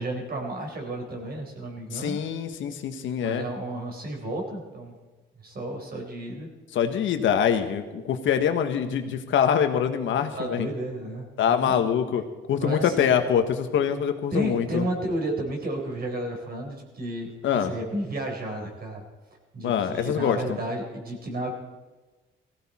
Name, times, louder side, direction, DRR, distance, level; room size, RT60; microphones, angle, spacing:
voice 1, 0.0-2.2 3.2-4.9 5.4-6.5 10.3-11.8 12.6-13.1 13.7-13.9 14.3-19.0 19.5-21.5, right 1 dB, 50° right, 1 dB, 4.4 m, -32 dB
voice 2, 1.9-3.4 6.7-10.7 11.4-12.2 12.5-14.8 17.4-17.7 19.6-20.6, left 8 dB, 75° left, 8 dB, 1.4 m, -24 dB
18.0 x 15.5 x 4.3 m, 1.2 s
cardioid pair, 90°, 20 cm